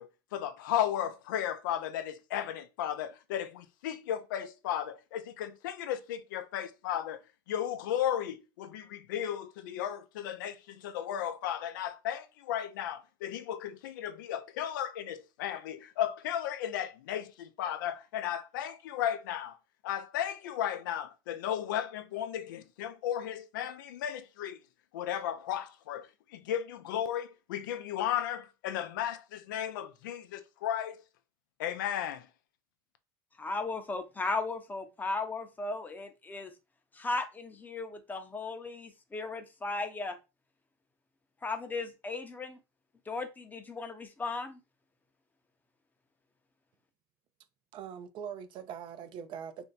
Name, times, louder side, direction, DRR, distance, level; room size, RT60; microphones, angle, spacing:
voice 1, 0.0-7.2 7.5-19.6 19.8-24.6 24.9-31.0 31.6-32.3, left 10 dB, 90° left, 0.4 m, -35 dB
voice 2, 33.4-36.5 36.9-40.2 41.4-42.6 43.1-44.6, left 3 dB, 15° left, 0.6 m, -36 dB
voice 3, 47.7-49.7, right 8 dB, 50° right, 0.5 m, -42 dB
2.6 x 2.1 x 3.9 m
supercardioid pair, 100°, 10 cm